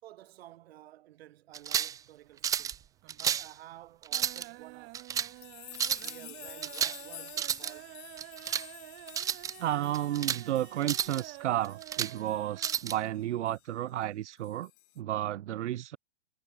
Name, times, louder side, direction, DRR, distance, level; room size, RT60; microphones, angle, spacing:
voice 1, 0.0-2.9 3.1-5.0 6.0-7.9, right 14 dB, 60° right, 5.7 m, -52 dB
sound 1, 1.5-2.0 2.4-2.8 3.1-3.5 4.0-4.5 4.9-5.3 5.7-6.1 6.6-7.0 7.3-7.7 8.2-8.7 9.1-9.5 9.9-10.4 10.8-11.2 11.6-12.1 12.6-13.0, right 9 dB, 10° right, 0.5 m, -31 dB
sound 2, 2.1-2.7 3.0-3.5 3.8-12.8 13.1-13.2 13.5-13.6, right 27 dB, 35° right, 1.3 m, -50 dB
sound 3, 5.3-13.1 13.5-13.6 14.4-15.0, left 23 dB, 45° left, 5.9 m, -50 dB
voice 2, 9.6-14.7 15.0-16.0, right 13 dB, 80° right, 0.7 m, -32 dB
hypercardioid pair, 130°, 35 cm